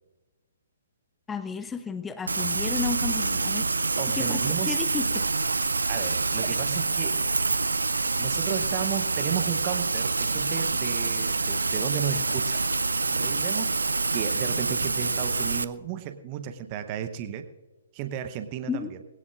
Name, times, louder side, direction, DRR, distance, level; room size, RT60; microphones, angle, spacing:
voice 1, 1.3-3.7 4.1-5.2 18.7-18.9, left 6 dB, 10° left, 11 dB, 0.5 m, -33 dB
Rain, 2.3-15.6, right 3 dB, 75° right, 0.4 m, -26 dB
voice 2, 4.0-4.8 5.9-7.2 8.2-12.6 13.1-17.5 17.9-19.0, right 10 dB, 30° right, 10 dB, 0.8 m, -34 dB
20.5 x 17.5 x 2.5 m, 1.2 s
figure-of-eight pair, 125°, 0 cm